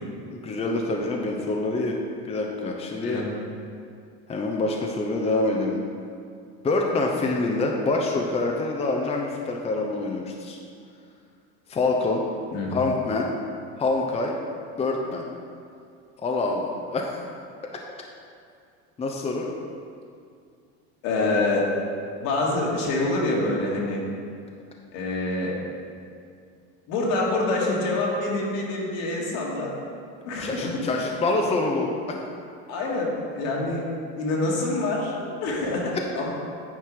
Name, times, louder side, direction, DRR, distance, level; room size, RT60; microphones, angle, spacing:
voice 1, 0.3-2.0 2.3-3.2 4.3-5.8 6.6-10.6 11.7-12.3 12.7-13.3 13.8-14.4 14.8-15.2 16.2-17.2 19.0-19.5 30.3-32.2, left 2 dB, 20° left, 0 dB, 0.7 m, -26 dB
voice 2, 21.0-21.7 22.2-24.0 24.9-25.5 26.9-29.7 30.3-30.8 32.7-33.9 34.2-36.3, left 2 dB, 70° left, -3 dB, 2.0 m, -26 dB
9.3 x 4.4 x 4.8 m, 2.3 s
supercardioid pair, 120°, 33 cm